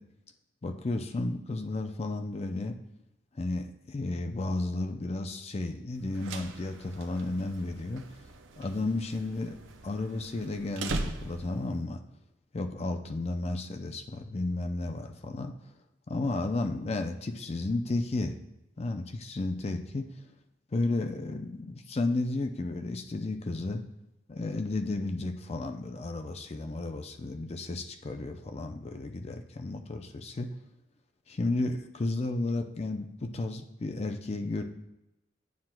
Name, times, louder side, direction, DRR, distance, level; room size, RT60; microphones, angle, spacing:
voice 1, 0.6-2.8 3.4-8.0 8.6-9.6 9.8-12.0 12.5-15.5 16.1-18.3 18.8-20.2 20.7-23.8 24.3-30.5 31.3-34.6, left 2 dB, 30° left, 6 dB, 0.4 m, -33 dB
sound 1, 6.0-11.7, right 2 dB, 75° right, 0.6 m, -40 dB
9.5 x 5.8 x 2.2 m, 0.91 s
head